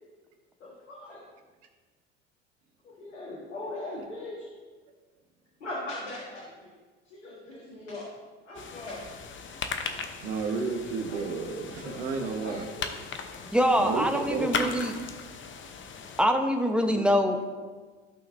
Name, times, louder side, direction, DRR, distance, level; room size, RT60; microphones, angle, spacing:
voice 1, 0.6-1.2 3.0-4.5 5.6-6.7 7.1-8.1 8.5-9.1 11.1-11.2 11.8-12.9, left 2 dB, 85° left, -5 dB, 1.8 m, -40 dB
sound 1, 8.5-16.2, left 6 dB, 35° left, 0.9 m, -38 dB
voice 2, 10.2-12.7 13.8-15.0 16.9-17.0, right 4 dB, 65° right, 4 dB, 1.4 m, -32 dB
voice 3, 13.5-14.9 16.2-17.4, equal, 5° right, 5 dB, 1.0 m, -24 dB
16.0 x 5.6 x 2.7 m, 1.4 s
hypercardioid pair, 70°, 35 cm